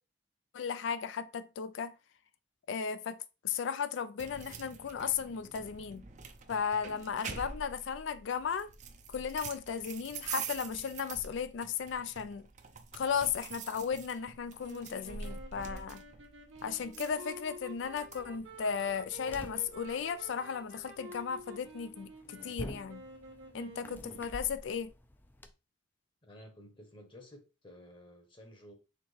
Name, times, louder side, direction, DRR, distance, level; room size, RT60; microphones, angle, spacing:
voice 1, 0.5-1.9 2.7-6.0 6.5-8.7 9.1-12.5 12.9-16.0 16.6-23.0 23.5-24.9, left 6 dB, 80° left, 0.4 m, -35 dB
sound 1, 4.2-18.2, right 6 dB, 40° right, 0.5 m, -46 dB
sound 2, 14.6-24.6, right 2 dB, 90° right, 1.1 m, -50 dB
sound 3, 18.2-25.5, left 1 dB, 10° left, 0.4 m, -49 dB
voice 2, 26.2-28.7, equal, 25° left, 0.9 m, -53 dB
4.4 x 3.5 x 3.2 m
head